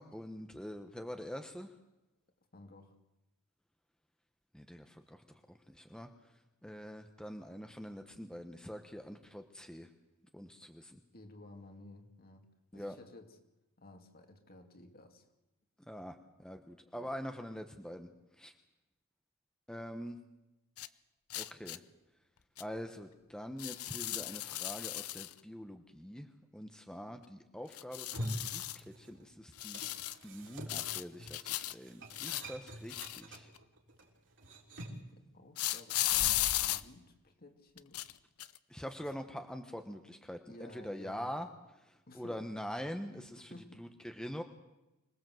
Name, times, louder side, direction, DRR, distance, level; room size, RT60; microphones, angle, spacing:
voice 1, 0.0-1.7 4.5-6.3 6.6-9.9 10.3-11.0 12.7-13.0 15.9-18.1 18.4-18.5 19.7-20.2 21.3-21.8 22.6-33.5 38.7-41.5 41.8-44.4, equal, 5° left, 6 dB, 1.0 m, -44 dB
voice 2, 2.5-3.0 11.1-12.5 12.7-13.4 13.8-15.3 16.9-17.1 35.1-38.0 39.0-39.1 40.5-41.3 42.1-42.4 43.4-43.8, left 2 dB, 45° left, 5 dB, 2.5 m, -54 dB
sound 1, 20.8-20.9 21.3-21.8 22.6-22.7 23.6-25.3 27.7-28.8 29.6-30.2 30.7-31.7 32.1-33.6 35.6-36.8 37.8-38.1 38.4-38.6, left 14 dB, 80° left, 0.8 m, -35 dB
sound 2, 27.9-29.3 29.6-35.1, equal, 55° right, 3.7 m, -45 dB
25.5 x 19.5 x 7.8 m, 1.0 s
head